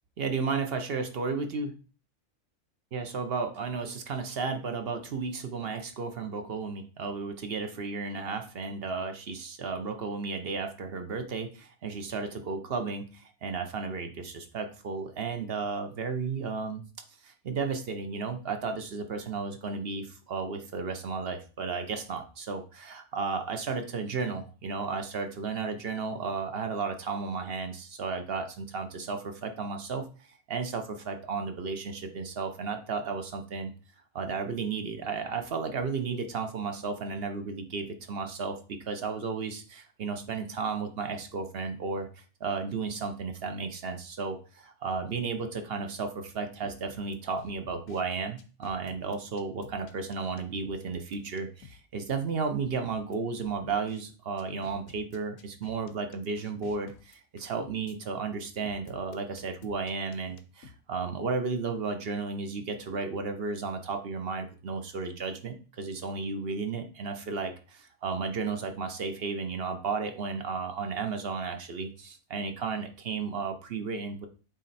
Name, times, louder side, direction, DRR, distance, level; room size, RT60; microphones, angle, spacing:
voice 1, 0.2-1.7 2.9-16.8 17.2-33.7 34.1-74.3, right 4 dB, 50° right, 6 dB, 0.9 m, -33 dB
sound 1, 46.6-48.0 48.4-51.8 52.1-52.2 52.6-54.0 54.4-58.0 58.6-60.7, left 6 dB, 75° left, 1.1 m, -52 dB
7.7 x 3.2 x 4.1 m, 0.37 s
omnidirectional pair, 1.4 m